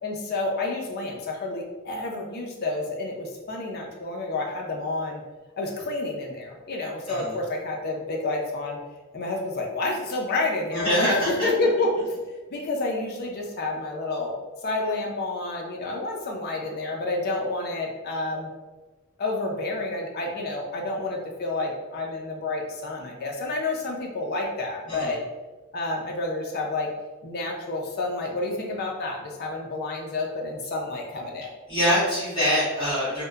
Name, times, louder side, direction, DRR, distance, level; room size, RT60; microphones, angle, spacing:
voice 1, 0.0-5.2 5.6-8.8 9.1-12.2 12.5-14.3 14.6-18.5 19.2-25.2 25.7-26.9 27.2-31.5, left 2 dB, 50° left, 0 dB, 0.5 m, -29 dB
voice 2, 10.7-11.5 24.9-25.1 31.7-33.2, equal, 20° left, -11 dB, 1.4 m, -24 dB
2.7 x 2.1 x 2.3 m, 1.2 s
head